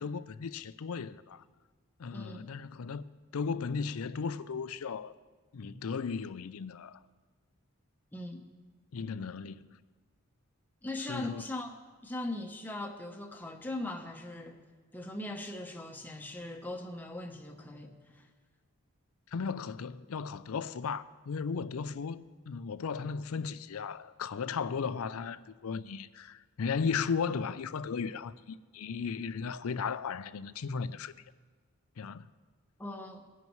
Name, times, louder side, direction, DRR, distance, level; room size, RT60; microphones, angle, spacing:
voice 1, 0.0-1.4 2.0-3.1 3.3-5.1 5.5-7.0 8.9-9.7 11.1-11.4 19.3-31.1 32.0-32.3, left 5 dB, 80° left, 0.5 m, -36 dB
voice 2, 2.1-2.5 8.1-8.4 10.8-11.7 12.0-14.6 14.9-18.3 32.8-33.3, left 1 dB, 10° left, 0.9 m, -40 dB
20.0 x 11.0 x 3.1 m
head